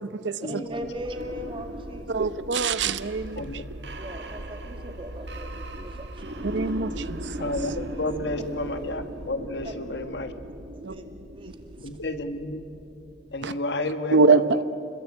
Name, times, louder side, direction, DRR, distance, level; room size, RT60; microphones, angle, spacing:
voice 1, 0.4-2.3 4.0-6.7 8.1-8.2 9.4-9.7 10.7-11.1 11.3-11.9, equal, 30° right, 5 dB, 2.3 m, -39 dB
sound 1, 0.7-13.5, right 1 dB, 70° right, 1.7 m, -38 dB
voice 2, 2.1-3.4 6.4-7.0 7.4-7.5 10.8-10.9 13.4-13.5 14.1-14.6, right 4 dB, 85° right, 13 dB, 0.8 m, -23 dB
voice 3, 3.4-3.7 7.4-10.3 11.8-12.6 13.3-14.5, left 2 dB, 70° left, 8 dB, 1.6 m, -31 dB
29.0 x 21.5 x 8.6 m, 2.6 s
head